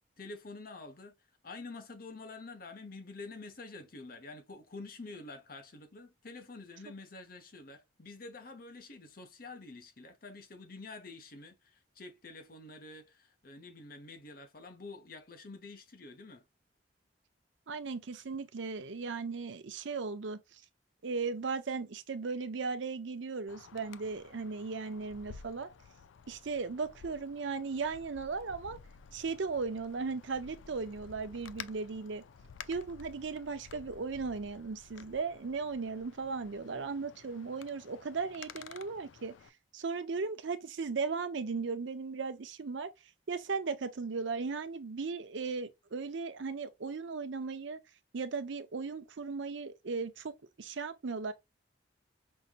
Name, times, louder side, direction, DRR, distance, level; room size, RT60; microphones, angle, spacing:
voice 1, 0.2-1.1 1.4-16.4, left 3 dB, 50° left, 0.9 m, -48 dB
voice 2, 17.7-20.6 21.0-25.7 26.3-28.8 29.1-32.2 32.7-39.3 39.7-42.9 43.3-47.8 48.1-50.3 50.6-51.3, right 4 dB, 70° right, 0.6 m, -37 dB
Wind, 23.5-39.5, left 7 dB, 75° left, 0.4 m, -53 dB
5.5 x 2.7 x 2.4 m
head